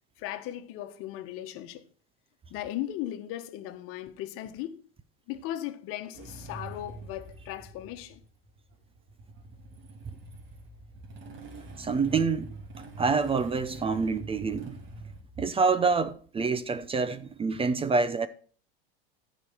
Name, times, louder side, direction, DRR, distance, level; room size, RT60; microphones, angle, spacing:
voice 1, 0.2-1.8 2.5-4.8 5.3-8.2, left 13 dB, 50° left, 1.4 m, -37 dB
Motorcycle / Engine starting, 6.1-15.2, right 2 dB, 40° right, 3.0 m, -45 dB
voice 2, 11.8-12.5 12.8-14.8 15.4-18.3, right 4 dB, 20° right, 0.8 m, -27 dB
14.5 x 5.1 x 5.8 m
hypercardioid pair, 95°, 29 cm